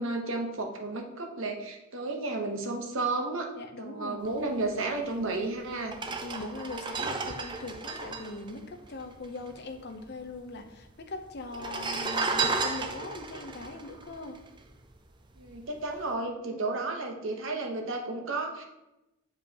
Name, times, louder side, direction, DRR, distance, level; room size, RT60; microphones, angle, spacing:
voice 1, 0.0-3.5 3.8-5.9 15.4-18.6, right 2 dB, 60° right, 2 dB, 0.9 m, -32 dB
voice 2, 3.5-4.4 6.1-14.4 16.5-16.7, left 2 dB, 50° left, 5 dB, 0.6 m, -41 dB
sound 1, 5.2-5.3 5.8-9.5 9.8-9.9 10.1-10.8 11.4-14.9 15.4-15.6, right 4 dB, 20° right, 0.3 m, -33 dB
7.0 x 4.9 x 2.8 m, 0.95 s
head